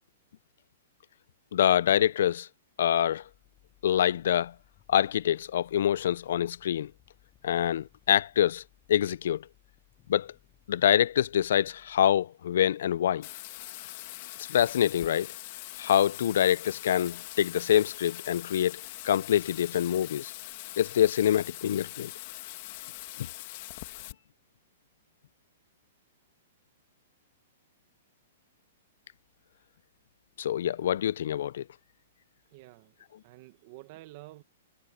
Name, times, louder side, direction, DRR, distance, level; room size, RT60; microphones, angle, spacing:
voice 1, 1.5-2.5 2.8-3.2 3.8-4.5 4.9-6.9 7.4-8.6 8.9-9.4 10.1-10.3 10.7-13.3 14.4-15.3 15.8-20.3 20.8-22.1 30.4-31.6, left 10 dB, 70° left, 0.4 m, -25 dB
sound 1, 3.2-12.1, left 14 dB, 25° left, 7.8 m, -64 dB
Bathtub (filling or washing), 13.2-24.1, left 18 dB, 45° left, 1.6 m, -42 dB
voice 2, 32.5-34.4, right 19 dB, 40° right, 1.1 m, -50 dB
hypercardioid pair, 155°, 0 cm